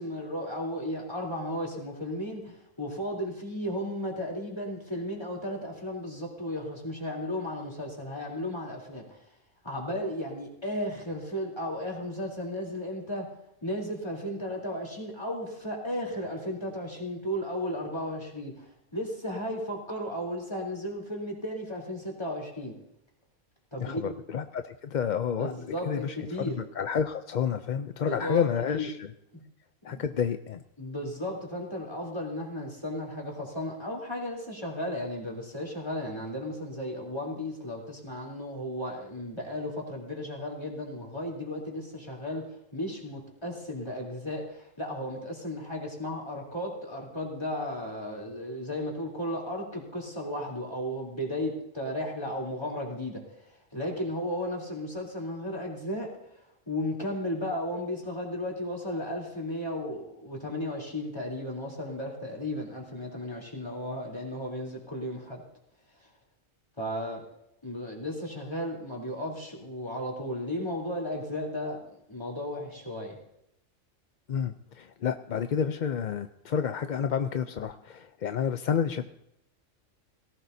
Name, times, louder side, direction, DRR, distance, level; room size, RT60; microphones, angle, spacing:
voice 1, 0.0-9.3 9.6-13.3 13.6-22.7 23.7-24.1 25.4-26.5 28.0-28.5 28.7-28.9 29.3-29.4 29.9-30.0 30.8-56.1 56.7-65.4 66.8-67.2 67.6-73.2, left 1 dB, 20° left, -3 dB, 3.5 m, -34 dB
voice 2, 23.8-25.5 25.8-29.1 29.8-30.6 74.3-79.1, left 7 dB, 55° left, 9 dB, 0.5 m, -30 dB
18.0 x 17.0 x 2.7 m, 0.80 s
omnidirectional pair, 1.3 m